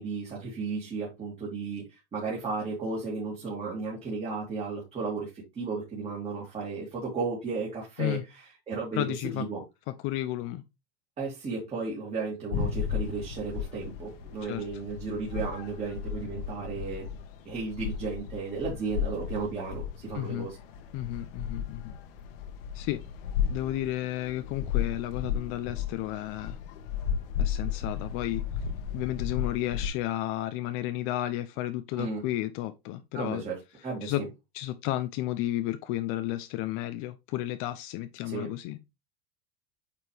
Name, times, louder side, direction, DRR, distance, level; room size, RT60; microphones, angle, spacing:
voice 1, 0.0-9.6 11.2-17.1 17.4-20.6 32.0-32.2 33.1-34.3 38.2-38.5, right 4 dB, 20° right, 2.7 m, -34 dB
voice 2, 8.9-9.4 10.0-10.6 14.4-14.6 20.1-20.5 20.9-21.9 22.7-26.6 27.4-28.4 28.9-33.4 34.0-34.2 34.5-38.9, left 14 dB, 45° left, 0.6 m, -32 dB
sound 1, 12.5-29.9, left 8 dB, 70° left, 1.4 m, -34 dB
8.8 x 4.3 x 3.3 m
supercardioid pair, 155°, 30 cm